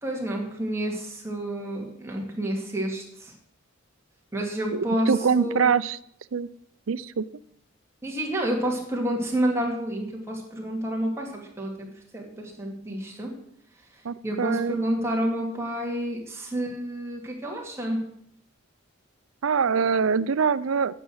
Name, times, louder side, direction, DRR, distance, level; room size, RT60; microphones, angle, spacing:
voice 1, 0.0-3.3 4.3-5.1 5.3-5.7 8.0-13.3 14.2-18.0, right 1 dB, 15° right, -1 dB, 2.5 m, -29 dB
voice 2, 4.7-6.0 6.3-6.5 6.9-7.3 14.0-14.8 19.4-20.9, right 6 dB, 70° right, 17 dB, 0.5 m, -24 dB
9.9 x 6.9 x 7.9 m, 0.70 s
head